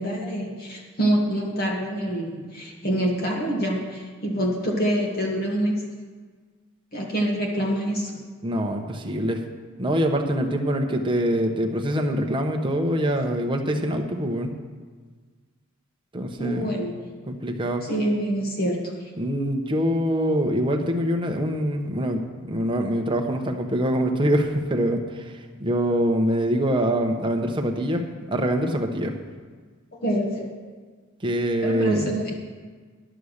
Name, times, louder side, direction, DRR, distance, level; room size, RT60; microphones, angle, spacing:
voice 1, 0.0-5.8 6.9-8.2 16.4-17.0 17.8-18.9 30.0-30.5 31.6-32.3, right 1 dB, 45° left, -1 dB, 1.5 m, -26 dB
voice 2, 8.4-9.4 9.8-14.5 16.1-16.8 17.3-17.8 19.2-22.2 22.5-29.1 31.2-32.1, equal, 20° right, 3 dB, 0.9 m, -24 dB
11.0 x 7.0 x 6.5 m, 1.5 s
head